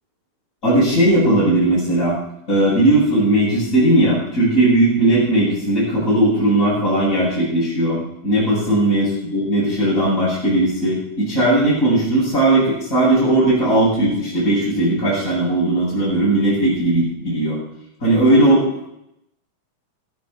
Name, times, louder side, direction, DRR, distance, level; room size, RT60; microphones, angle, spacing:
voice 1, 0.6-2.2 2.5-17.6 18.0-18.9, right 1 dB, 25° left, -11 dB, 7.9 m, -17 dB
14.5 x 12.5 x 5.8 m, 0.80 s
omnidirectional pair, 3.5 m